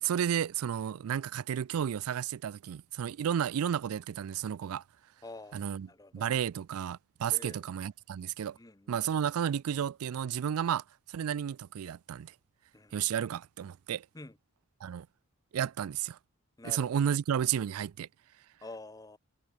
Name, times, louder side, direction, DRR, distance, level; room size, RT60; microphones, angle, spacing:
voice 1, 0.0-4.8 5.5-5.9 6.1-8.6 8.9-12.3 12.9-14.1 14.8-15.1 15.5-16.2 16.6-18.1, right 9 dB, 85° right, 0.4 m, -32 dB
voice 2, 5.2-6.3 7.3-7.6 8.6-9.0 12.7-12.9 14.1-14.4 16.6-16.9 18.6-19.2, left 2 dB, 15° left, 0.8 m, -47 dB
head